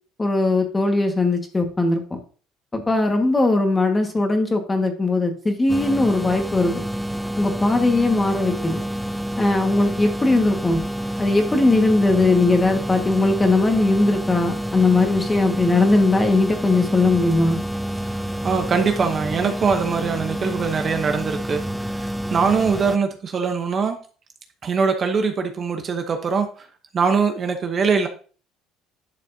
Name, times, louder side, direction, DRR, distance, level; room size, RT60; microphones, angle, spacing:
voice 1, 0.2-2.2 2.7-6.8 7.4-8.8 9.4-10.8 11.2-17.6, left 2 dB, 15° left, 4 dB, 1.6 m, -19 dB
sound 1, 5.7-23.0, equal, 5° right, 0.4 m, -28 dB
voice 2, 18.0-24.0 24.6-26.7 26.9-28.1, right 5 dB, 35° right, 6 dB, 0.9 m, -22 dB
11.0 x 6.5 x 2.8 m, 0.39 s
cardioid pair, 135°, 0 cm